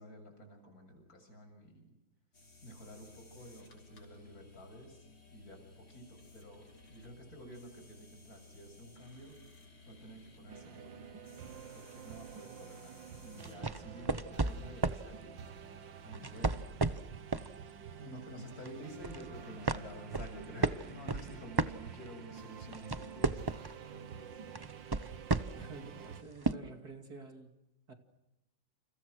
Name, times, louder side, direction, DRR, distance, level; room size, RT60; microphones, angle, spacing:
voice 1, 0.0-2.0 2.6-9.4 9.9-11.0 11.7-15.4 16.0-16.6 18.0-24.4, equal, 50° left, 5 dB, 7.9 m, -51 dB
sound 1, 2.3-13.6, left 2 dB, 80° left, 6.9 m, -58 dB
sound 2, 10.5-26.2, right 8 dB, 75° right, 2.1 m, -49 dB
sound 3, 13.4-15.1 16.1-17.5 18.0-18.2 18.6-19.3 19.7-22.3 22.6-23.8 24.6-25.7 26.4-26.5, right 3 dB, 30° right, 0.4 m, -33 dB
voice 2, 25.5-27.5 27.9-28.0, right 3 dB, 50° right, 6 dB, 3.0 m, -49 dB
30.0 x 29.5 x 6.3 m, 0.92 s
omnidirectional pair, 2.1 m